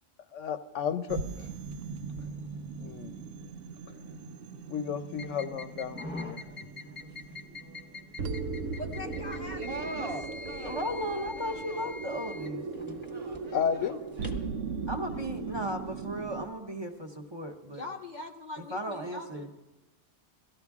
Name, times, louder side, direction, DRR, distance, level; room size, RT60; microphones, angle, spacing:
voice 1, 0.3-1.5 2.8-3.1 4.7-6.4 13.5-14.0, left 7 dB, 85° left, 11 dB, 1.0 m, -32 dB
sound 1, 1.1-16.5, right 4 dB, 90° right, 1.0 m, -39 dB
sound 2, 5.1-14.5, left 3 dB, 10° left, 1.0 m, -45 dB
voice 2, 8.8-10.8 17.7-19.5, left 3 dB, 50° left, 4 dB, 0.6 m, -42 dB
voice 3, 9.6-11.9 13.1-14.6 15.1-15.2, right 3 dB, 55° right, 5 dB, 1.0 m, -43 dB
voice 4, 10.7-12.6 14.9-17.9 18.6-19.5, equal, 25° right, 3 dB, 0.8 m, -36 dB
17.0 x 13.5 x 3.6 m, 1.0 s
omnidirectional pair, 1.2 m